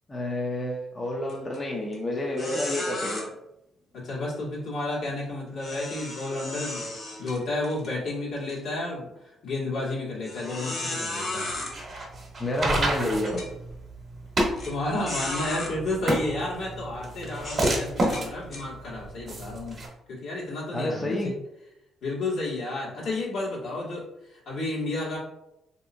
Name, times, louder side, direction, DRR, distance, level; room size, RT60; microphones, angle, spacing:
voice 1, 0.1-3.3 12.4-13.4 20.7-21.3, left 1 dB, 25° left, -2 dB, 0.6 m, -29 dB
sound 1, 1.3-1.6 1.9-2.0 2.4-3.2 5.6-7.9 8.4-8.5 9.2-9.3 10.2-11.7 12.6-12.7 13.2-13.5 14.6-14.7 15.1-15.7 16.4-16.6 17.4-18.6, left 2 dB, 45° left, 1.2 m, -34 dB
voice 2, 3.9-6.9 7.2-9.1 9.4-11.5 14.6-19.8 20.1-21.3 22.0-25.2, left 2 dB, 70° left, -5 dB, 1.4 m, -31 dB
sound 2, 11.5-19.9, right 1 dB, 45° right, 0.9 m, -29 dB
3.2 x 2.8 x 2.5 m, 0.85 s
cardioid pair, 90°, 0 cm